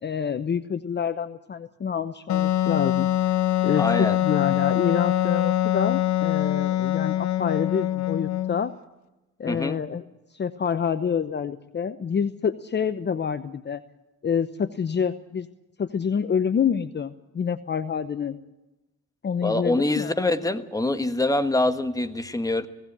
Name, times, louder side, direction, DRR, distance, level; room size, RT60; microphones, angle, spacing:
voice 1, 0.0-3.1 3.6-8.7 9.4-10.0 10.3-13.8 14.2-15.5 15.8-18.4 19.2-20.2, left 7 dB, 35° left, 11 dB, 0.9 m, -27 dB
Wind instrument woodwind instrument, 2.3-8.7, left 13 dB, 70° left, 0.9 m, -24 dB
voice 2, 3.8-4.2 9.5-9.8 19.4-22.7, left 2 dB, 10° left, 9 dB, 1.4 m, -25 dB
18.5 x 17.5 x 8.6 m, 1.0 s
cardioid pair, 90°, 30 cm